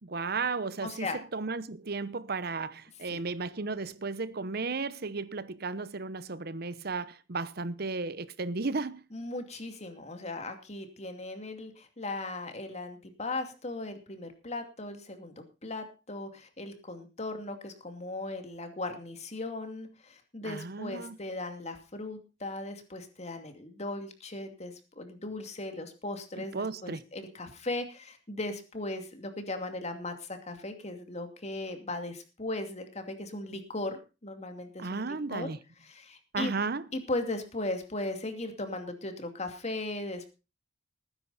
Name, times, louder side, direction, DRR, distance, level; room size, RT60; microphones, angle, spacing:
voice 1, 0.0-9.0 20.4-21.2 26.4-27.0 34.8-35.6 36.3-36.8, right 4 dB, 55° right, 0.9 m, -34 dB
voice 2, 0.8-1.2 3.1-3.2 9.1-35.5 35.8-36.6 36.9-40.3, left 2 dB, 35° left, 2.6 m, -38 dB
19.0 x 10.0 x 4.2 m
head